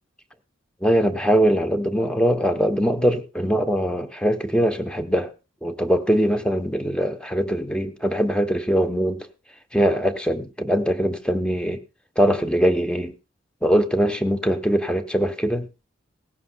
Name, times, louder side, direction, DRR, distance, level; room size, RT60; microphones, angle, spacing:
voice 1, 0.8-5.3 5.6-9.3 9.7-11.8 12.2-13.1 13.6-15.7, equal, 5° left, 0.9 m, -22 dB
18.0 x 16.0 x 2.3 m
head